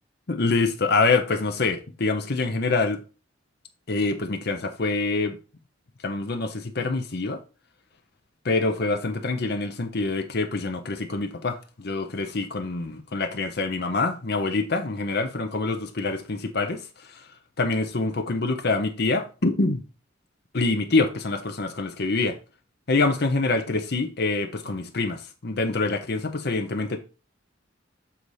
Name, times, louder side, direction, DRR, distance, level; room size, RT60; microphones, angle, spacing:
voice 1, 0.3-3.0 3.9-5.4 6.0-7.4 8.4-16.8 17.6-19.8 20.5-22.4 22.9-27.0, left 3 dB, 55° left, 0.8 m, -25 dB
7.0 x 4.1 x 4.8 m
head